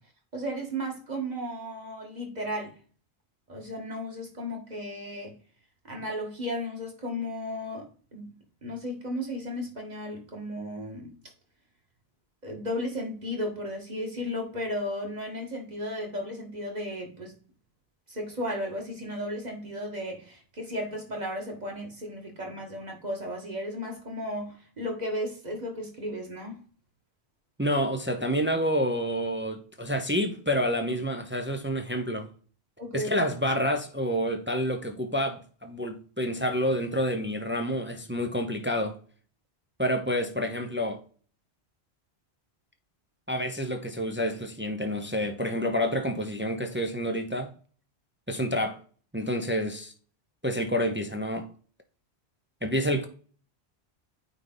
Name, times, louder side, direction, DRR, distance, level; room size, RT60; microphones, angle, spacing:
voice 1, 0.3-2.7 3.5-5.3 5.8-8.3 8.6-11.1 12.4-17.4 18.1-26.6 32.8-33.2, equal, 40° right, 2.0 m, -34 dB
voice 2, 27.6-32.3 32.9-39.0 39.8-41.0 43.3-47.5 48.3-48.8 49.1-49.9 50.4-51.5 52.6-53.1, equal, 10° right, 0.7 m, -28 dB
9.1 x 3.4 x 3.9 m
omnidirectional pair, 1.1 m